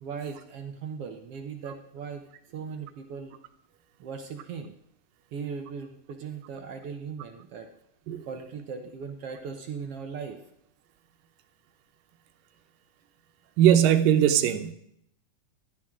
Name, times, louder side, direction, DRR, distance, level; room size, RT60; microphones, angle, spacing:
voice 1, 0.0-3.3 4.0-4.8 5.3-7.7 8.2-10.4, right 6 dB, 65° right, 5 dB, 1.5 m, -38 dB
voice 2, 13.6-14.7, right 10 dB, 85° right, 9 dB, 2.6 m, -20 dB
15.0 x 12.5 x 3.7 m, 0.74 s
omnidirectional pair, 3.8 m